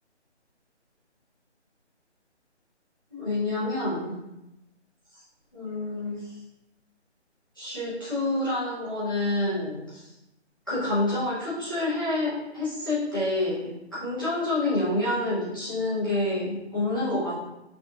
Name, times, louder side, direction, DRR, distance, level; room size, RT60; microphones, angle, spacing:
voice 1, 3.1-4.1 5.5-6.2 7.6-9.7 10.7-13.7 13.9-17.3, left 2 dB, 20° left, -13 dB, 0.9 m, -27 dB
5.1 x 2.5 x 3.5 m, 0.92 s
figure-of-eight pair, 175°, 35 cm